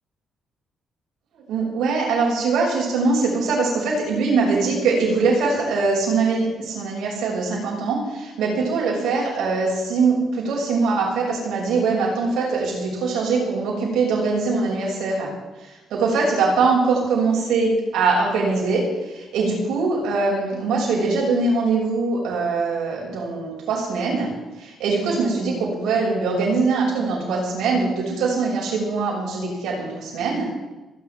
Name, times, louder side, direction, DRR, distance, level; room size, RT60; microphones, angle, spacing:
voice 1, 1.5-15.3 15.9-18.8 19.3-24.3 24.6-30.5, right 4 dB, 80° right, -3 dB, 6.2 m, -22 dB
28.0 x 10.5 x 3.6 m, 1.1 s
cardioid pair, 90°, 0 cm